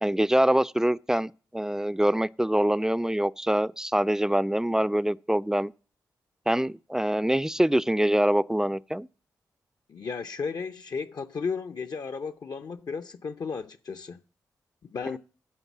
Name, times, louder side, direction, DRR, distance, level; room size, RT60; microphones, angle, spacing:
voice 1, 0.0-5.7 6.5-9.1, right 1 dB, 5° right, 0.4 m, -24 dB
voice 2, 9.9-14.2 14.8-15.2, left 5 dB, 55° left, 0.6 m, -34 dB
9.4 x 5.3 x 7.2 m
supercardioid pair, 40°, 8 cm